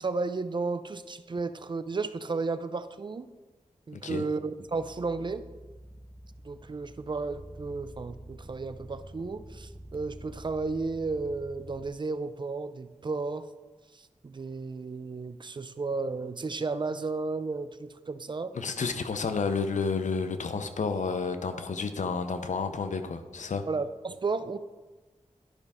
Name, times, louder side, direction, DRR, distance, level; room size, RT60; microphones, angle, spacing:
voice 1, 0.0-3.3 3.9-5.4 6.4-13.5 13.9-18.5 23.7-24.6, right 3 dB, 40° right, 12 dB, 0.4 m, -33 dB
voice 2, 3.9-4.3 18.5-23.6, left 5 dB, 75° left, 9 dB, 0.6 m, -31 dB
sound 1, 4.6-11.9, right 1 dB, 15° right, 0.9 m, -48 dB
11.0 x 5.3 x 3.5 m, 1.2 s
wide cardioid pair, 95°, 13 cm